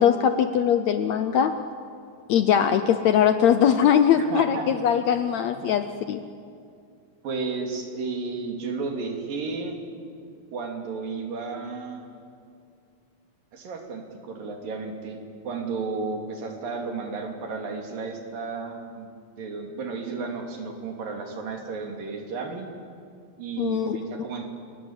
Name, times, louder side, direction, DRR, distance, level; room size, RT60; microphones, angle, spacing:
voice 1, 0.0-1.5 2.3-6.2 23.6-24.0, left 8 dB, 75° left, 9 dB, 1.6 m, -21 dB
voice 2, 4.2-4.7 5.2-5.3 5.6-5.8 7.2-9.8 10.5-12.0 13.5-15.2 15.4-19.1 19.4-22.7 23.4-24.4, right 4 dB, 70° right, 2 dB, 4.5 m, -33 dB
28.5 x 22.0 x 8.9 m, 2.3 s
omnidirectional pair, 4.1 m